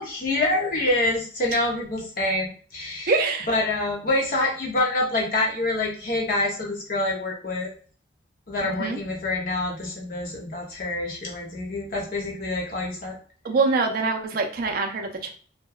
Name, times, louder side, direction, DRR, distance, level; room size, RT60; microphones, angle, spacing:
voice 1, 0.0-3.1 3.5-7.7 8.5-13.2, left 2 dB, 45° left, -2 dB, 0.6 m, -26 dB
voice 2, 3.1-3.5 8.6-9.0 13.4-15.3, right 3 dB, 45° right, 2 dB, 0.4 m, -24 dB
2.7 x 2.1 x 2.2 m, 0.43 s
head